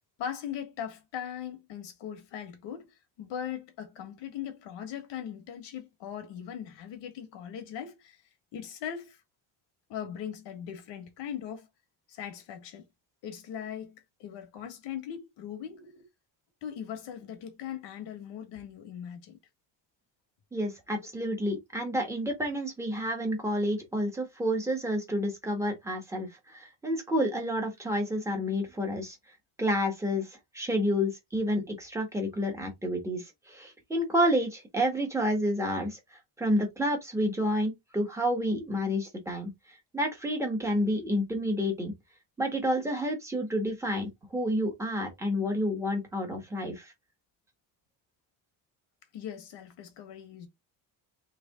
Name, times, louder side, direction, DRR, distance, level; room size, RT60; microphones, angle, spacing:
voice 1, 0.2-8.2 8.5-9.2 9.9-11.7 12.1-12.8 13.2-16.0 16.6-19.4 49.1-50.5, left 9 dB, 80° left, 1.5 m, -40 dB
voice 2, 20.5-29.2 29.6-36.0 36.4-39.5 39.9-41.9 42.4-46.9, equal, 5° right, 1.2 m, -29 dB
3.4 x 3.2 x 3.6 m
cardioid pair, 165°, 43 cm